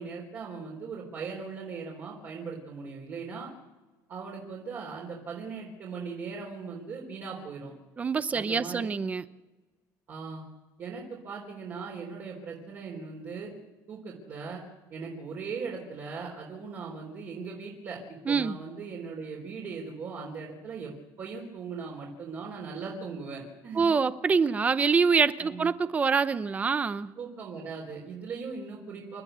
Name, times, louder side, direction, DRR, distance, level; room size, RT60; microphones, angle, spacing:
voice 1, 0.0-3.5 4.1-7.7 8.3-9.0 10.1-10.4 10.8-13.5 13.9-14.6 14.9-18.0 18.3-20.9 21.2-23.8 25.4-25.7 27.1-29.2, right 5 dB, 40° right, 4.2 m, -39 dB
voice 2, 8.0-9.2 18.3-18.6 23.7-27.1, right 5 dB, 20° right, 0.7 m, -25 dB
29.0 x 13.0 x 8.2 m
cardioid pair, 165°, 7 cm